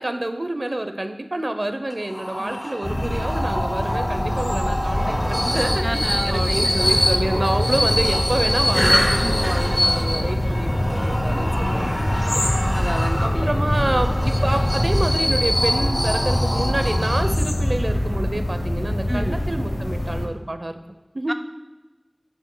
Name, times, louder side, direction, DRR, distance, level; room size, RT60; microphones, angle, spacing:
voice 1, 0.0-12.5 13.2-20.8 21.1-21.3, right 1 dB, 60° right, 8 dB, 0.7 m, -28 dB
sound 1, 1.9-17.6, equal, 20° left, 1.0 m, -26 dB
sound 2, 2.8-20.2, left 1 dB, 80° left, 1.8 m, -24 dB
sound 3, 5.0-15.5, equal, 5° right, 0.8 m, -30 dB
voice 2, 5.8-6.7 9.2-9.6 11.3-11.9 12.7-13.5 13.9-14.0 19.1-19.4 21.3-21.4, right 1 dB, 30° right, 7 dB, 0.3 m, -30 dB
18.0 x 7.0 x 2.3 m, 1.2 s
wide cardioid pair, 40°, 0 cm